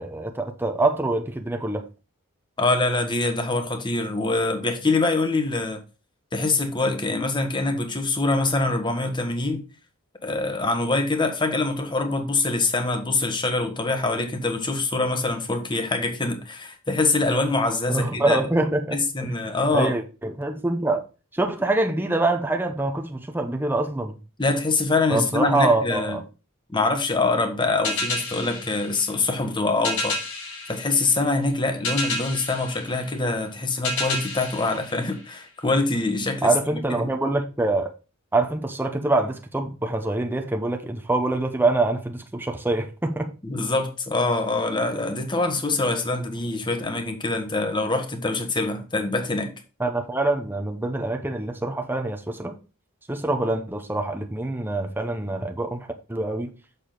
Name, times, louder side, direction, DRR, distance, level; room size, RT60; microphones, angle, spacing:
voice 1, 0.0-1.8 17.9-19.3 19.7-21.0 21.3-24.2 25.1-26.2 36.4-37.9 38.3-43.3 49.8-52.6 53.1-56.5, right 2 dB, 10° right, 0.7 m, -25 dB
voice 2, 2.6-5.8 6.3-9.6 10.2-18.4 18.9-19.9 24.4-26.2 26.7-30.2 30.7-36.5 36.9-37.1 43.4-49.5, left 3 dB, 20° left, 1.2 m, -24 dB
sound 1, 27.8-35.7, left 2 dB, 75° left, 3.7 m, -31 dB
6.8 x 6.7 x 3.8 m
head